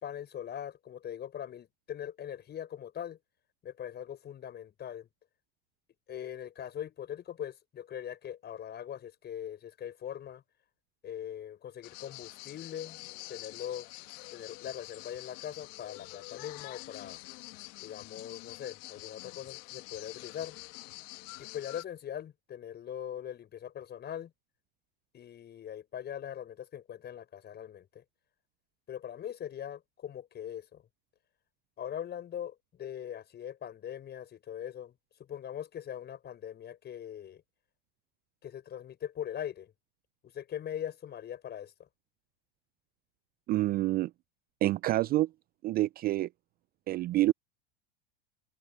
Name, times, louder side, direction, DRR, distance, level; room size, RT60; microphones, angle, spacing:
voice 1, 0.0-3.2 3.6-5.1 6.1-10.4 11.0-13.0 13.3-13.9 14.3-17.2 17.8-20.6 21.4-24.3 25.1-28.0 28.9-30.8 31.8-34.9 35.3-37.4 38.4-39.7 40.3-41.7, left 10 dB, 35° left, 6.2 m, -41 dB
sound 1, 11.8-21.8, left 26 dB, 60° left, 1.7 m, -47 dB
voice 2, 43.5-44.1 44.6-45.3 45.6-46.3 46.9-47.3, right 16 dB, 30° right, 0.4 m, -27 dB
hypercardioid pair, 105°, 31 cm